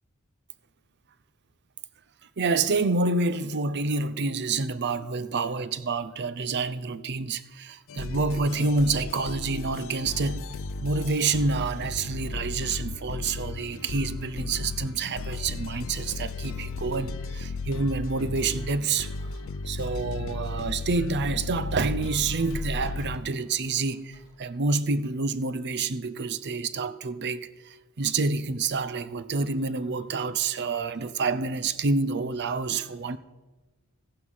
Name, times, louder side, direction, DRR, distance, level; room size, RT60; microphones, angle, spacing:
voice 1, 2.4-10.5 10.8-19.4 19.6-33.2, right 3 dB, 50° right, 0.6 m, -28 dB
sound 1, 7.9-23.2, left 3 dB, 65° left, 0.6 m, -35 dB
sound 2, 8.5-24.4, equal, 30° right, 4.9 m, -60 dB
14.5 x 11.0 x 5.6 m
head